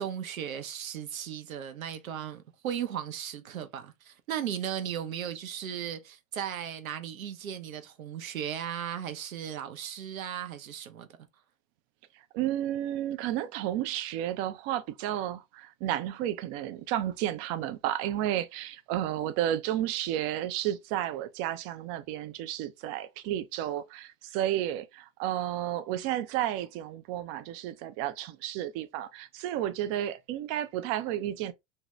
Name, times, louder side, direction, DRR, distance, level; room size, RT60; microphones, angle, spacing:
voice 1, 0.0-11.1, right 9 dB, 85° right, 0.6 m, -36 dB
voice 2, 12.3-31.5, right 12 dB, 35° right, 0.4 m, -32 dB
2.7 x 2.2 x 2.9 m
hypercardioid pair, 95°, 41 cm